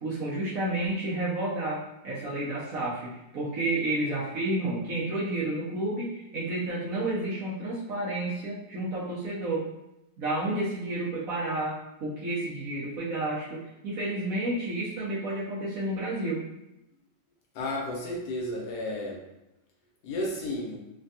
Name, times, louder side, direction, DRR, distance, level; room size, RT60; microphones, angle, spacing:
voice 1, 0.0-9.7 10.2-16.4, right 2 dB, 65° right, -7 dB, 0.9 m, -31 dB
voice 2, 17.5-19.2 20.0-20.8, left 1 dB, 70° left, -1 dB, 1.1 m, -32 dB
3.2 x 2.2 x 2.7 m, 0.87 s
omnidirectional pair, 1.9 m